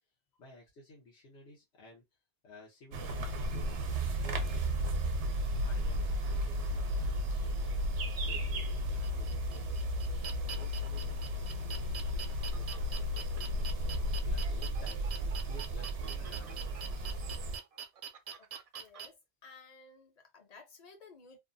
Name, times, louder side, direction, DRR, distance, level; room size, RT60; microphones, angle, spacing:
voice 1, 0.4-2.0 2.4-3.7 4.1-5.2 5.7-7.8 8.3-9.9 10.5-13.7 14.2-17.1, left 1 dB, 90° left, 1.2 m, -54 dB
sound 1, 2.9-17.6, equal, 90° right, 0.9 m, -34 dB
sound 2, 9.0-19.1, right 7 dB, 65° right, 0.3 m, -45 dB
voice 2, 18.8-21.4, left 4 dB, 45° left, 0.7 m, -55 dB
2.7 x 2.3 x 2.5 m
omnidirectional pair, 1.1 m